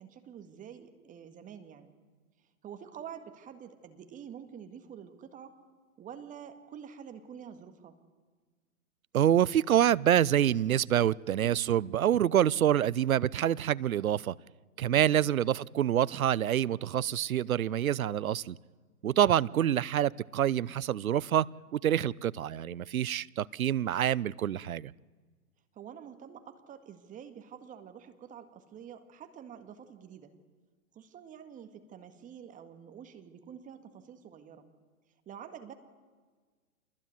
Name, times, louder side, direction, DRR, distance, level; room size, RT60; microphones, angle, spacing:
voice 1, 0.0-1.9 2.6-5.6 6.0-8.0 25.7-30.3 30.9-34.7 35.3-35.7, right 8 dB, 15° right, 1.9 m, -47 dB
voice 2, 9.1-14.3 14.8-18.6 19.0-21.5 21.7-24.9, right 10 dB, 70° right, 0.8 m, -26 dB
27.5 x 20.5 x 9.5 m
figure-of-eight pair, 125°, 44 cm